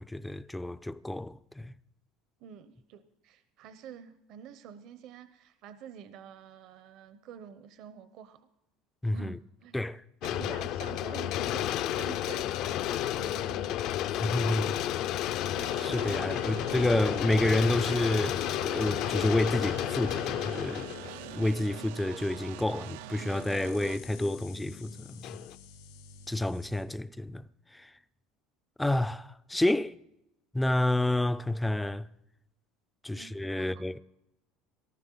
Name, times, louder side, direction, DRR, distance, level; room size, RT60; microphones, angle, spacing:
voice 1, 0.0-1.7 9.0-9.4 9.7-10.0 14.1-14.8 15.8-20.9 21.3-25.5 26.3-28.0 28.8-29.9 30.5-32.1 33.0-34.0, left 1 dB, 5° left, 0.4 m, -29 dB
voice 2, 2.4-8.5 9.1-9.8 10.2-13.8 26.8-26.9 33.1-34.0, right 8 dB, 55° right, 0.8 m, -48 dB
sound 1, 10.2-22.3 22.9-23.0 25.2-25.5, left 12 dB, 55° left, 0.6 m, -32 dB
sound 2, 15.6-24.0, right 14 dB, 85° right, 0.5 m, -44 dB
sound 3, 21.3-26.8, left 7 dB, 85° left, 3.1 m, -52 dB
18.5 x 13.0 x 3.9 m
cardioid pair, 140°, 0 cm